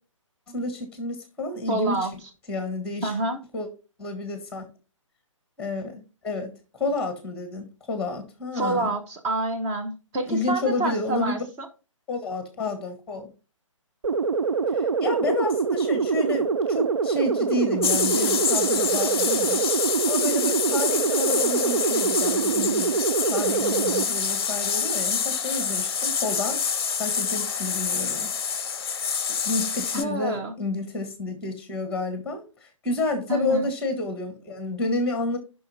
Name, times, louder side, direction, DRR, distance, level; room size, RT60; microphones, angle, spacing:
voice 1, 0.5-2.1 2.5-3.1 3.5-3.7 4.0-4.6 5.6-8.9 10.2-11.4 12.1-13.3 14.7-19.6 20.1-26.6 27.0-28.3 28.8-28.9 29.4-35.4, left 2 dB, 5° left, 1.5 m, -30 dB
voice 2, 1.7-2.1 3.0-3.4 8.5-11.7 29.9-30.5 33.3-33.7, right 2 dB, 15° right, 1.0 m, -27 dB
sound 1, 14.0-24.0, right 5 dB, 65° right, 0.5 m, -24 dB
sound 2, 17.8-30.0, left 6 dB, 50° left, 0.6 m, -27 dB
15.0 x 5.7 x 2.8 m
figure-of-eight pair, 135°, 17 cm